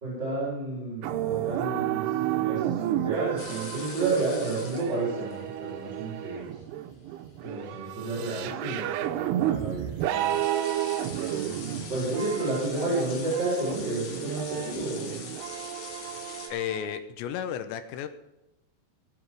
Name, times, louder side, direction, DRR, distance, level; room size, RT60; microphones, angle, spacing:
voice 1, 0.0-6.6 7.4-10.4 11.2-15.2, right 2 dB, 25° right, -7 dB, 4.3 m, -31 dB
sound 1, 1.0-17.0, right 12 dB, 85° right, 2.4 m, -32 dB
sound 2, 3.4-16.5, left 5 dB, 60° left, 3.7 m, -44 dB
voice 2, 16.5-18.1, left 9 dB, 80° left, 10 dB, 3.0 m, -33 dB
18.5 x 7.7 x 4.7 m, 0.92 s
omnidirectional pair, 5.3 m